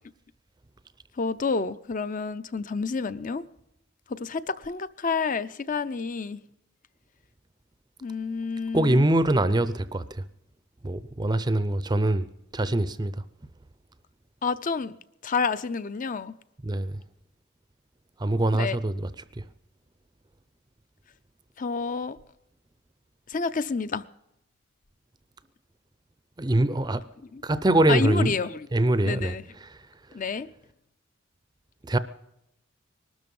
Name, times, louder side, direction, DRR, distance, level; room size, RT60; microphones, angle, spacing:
voice 1, 1.2-3.4 4.1-6.4 8.0-9.0 14.4-15.0 15.2-16.3 18.5-18.8 21.6-22.2 23.3-24.0 27.3-27.4 27.9-28.6 29.0-29.4 30.1-30.5, left 4 dB, 40° left, 0.6 m, -29 dB
voice 2, 8.7-10.2 10.8-12.3 12.5-13.1 16.6-17.0 18.2-19.1 19.4-19.5 26.4-27.0 27.4-28.4 28.7-29.8 31.9-32.0, right 1 dB, 20° right, 0.5 m, -24 dB
20.5 x 12.5 x 5.4 m
head